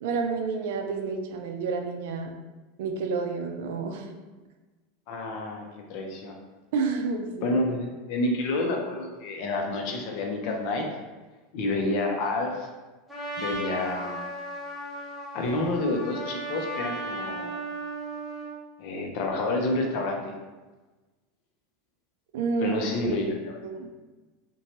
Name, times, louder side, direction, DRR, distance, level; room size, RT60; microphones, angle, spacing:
voice 1, 0.0-2.3 2.8-4.1 6.7-7.5 22.3-22.8 23.6-23.9, right 4 dB, 75° right, 4 dB, 0.4 m, -29 dB
voice 2, 5.1-6.4 7.4-10.9 11.5-12.7 13.4-14.2 15.3-17.6 18.8-20.3 22.6-23.6, left 2 dB, 60° left, 2 dB, 0.5 m, -29 dB
Trumpet, 13.1-18.6, right 1 dB, ahead, 0.7 m, -35 dB
2.8 x 2.2 x 2.9 m, 1.2 s
supercardioid pair, 115°, 0 cm